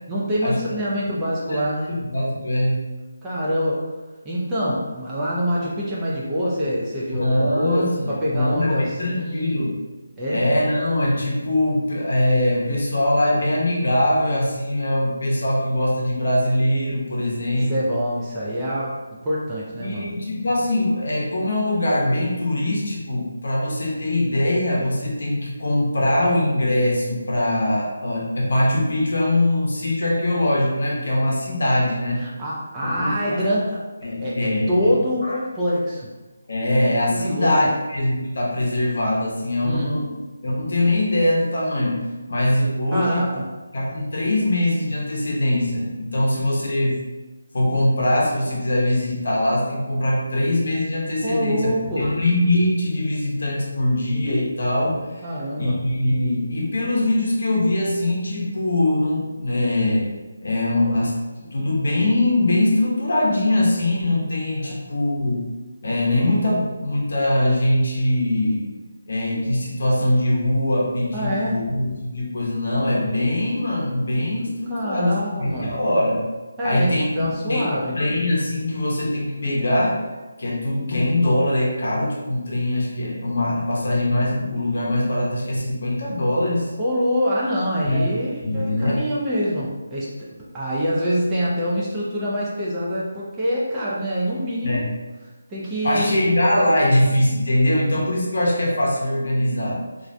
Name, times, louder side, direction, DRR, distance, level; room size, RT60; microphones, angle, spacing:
voice 1, 0.1-1.9 3.2-3.9 4.2-9.7 10.2-10.4 17.5-20.1 32.2-36.1 37.1-37.7 39.6-39.9 42.9-43.5 51.2-52.1 55.2-55.8 64.6-64.8 71.1-71.6 74.7-75.8 76.6-78.0 86.8-90.1 90.5-94.8 95.5-96.1, equal, 10° right, -7 dB, 0.3 m, -25 dB
voice 2, 1.1-2.8 7.1-9.8 10.3-17.9 19.8-32.2 32.8-33.4 34.0-34.9 35.2-35.4 36.5-40.1 40.4-43.2 43.7-47.0 47.5-55.2 55.5-60.1 60.4-65.4 65.8-68.7 69.1-76.3 76.6-77.6 77.9-80.0 80.4-86.7 87.8-88.1 88.4-89.0 94.6-94.9 95.8-99.8, left 1 dB, 60° left, -4 dB, 0.7 m, -22 dB
2.4 x 2.1 x 2.5 m, 1.2 s
figure-of-eight pair, 170°, 0 cm